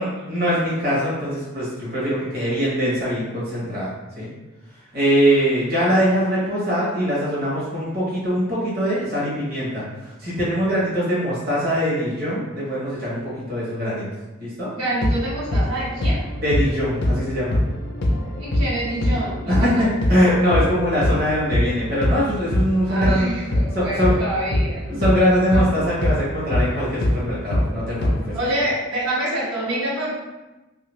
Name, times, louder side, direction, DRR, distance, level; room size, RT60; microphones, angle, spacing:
voice 1, 0.0-3.9 4.2-4.3 4.9-14.1 14.4-14.7 16.4-17.6 19.5-23.3 23.7-24.2 24.9-28.3, equal, 45° right, -7 dB, 0.9 m, -22 dB
voice 2, 14.7-16.2 18.0-19.9 22.9-24.8 25.5-25.6 28.3-30.1, right 1 dB, 85° right, -7 dB, 1.1 m, -27 dB
sound 1, 15.0-22.7 23.0-28.7, left 1 dB, 55° left, 0.4 m, -23 dB
3.0 x 2.4 x 3.0 m, 1.1 s
head